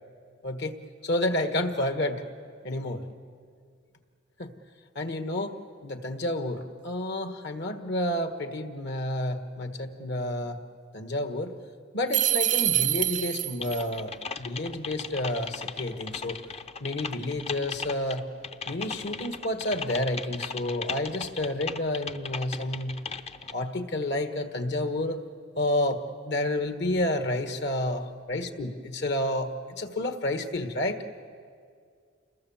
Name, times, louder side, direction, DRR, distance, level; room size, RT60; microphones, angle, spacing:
voice 1, 0.4-0.7 1.0-2.2 2.6-3.0 4.4-4.5 4.9-5.6 5.8-10.6 10.9-11.5 11.9-16.4 16.8-18.3 18.7-23.0 23.5-25.2 25.6-31.0, left 1 dB, 60° left, 8 dB, 1.6 m, -30 dB
sound 1, 12.1-13.8, right 13 dB, 40° right, 0.5 m, -25 dB
Typing, 13.6-23.5, left 5 dB, 30° left, 0.7 m, -37 dB
28.5 x 21.5 x 7.3 m, 2.2 s
head